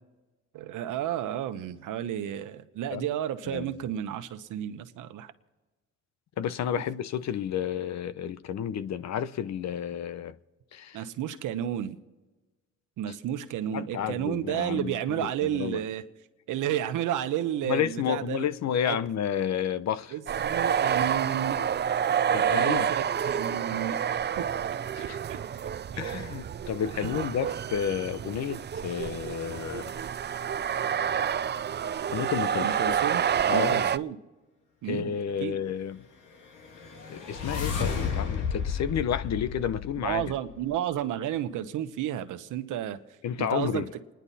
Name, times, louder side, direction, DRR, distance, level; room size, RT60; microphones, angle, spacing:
voice 1, 0.5-5.3 10.9-12.0 13.0-16.0 16.5-18.4 18.8-19.0 20.1-21.6 22.4-24.0 24.4-24.5 25.0-25.4 25.9-26.0 26.9-27.2 32.6-34.2 34.8-35.1 35.4-35.6 40.0-43.0 43.4-43.8, right 11 dB, 85° right, 1.1 m, -32 dB
voice 2, 6.4-10.3 10.7-11.0 13.1-13.2 13.7-15.8 17.7-20.1 22.3-22.9 24.9-25.2 26.0-29.9 31.7-33.0 33.5-33.9 34.9-36.0 37.1-40.3 43.2-43.9, left 9 dB, 60° left, 0.9 m, -31 dB
sound 1, 20.3-34.0, right 8 dB, 35° right, 0.5 m, -28 dB
sound 2, 36.5-40.6, left 6 dB, 85° left, 2.3 m, -32 dB
29.0 x 10.5 x 4.2 m
cardioid pair, 90°, 30 cm